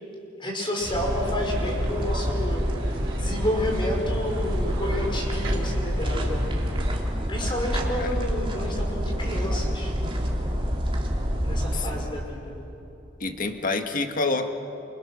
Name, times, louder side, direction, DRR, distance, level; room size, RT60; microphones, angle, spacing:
voice 1, 0.4-6.6 7.3-9.9 11.4-12.6, left 1 dB, 25° left, 0 dB, 5.5 m, -30 dB
sound 1, 0.8-6.9, equal, 70° right, 4.7 m, -34 dB
sound 2, 0.9-12.0, equal, 25° right, 3.2 m, -27 dB
voice 2, 13.2-14.5, left 3 dB, 45° left, 6 dB, 1.7 m, -27 dB
29.0 x 28.5 x 6.3 m, 3.0 s
head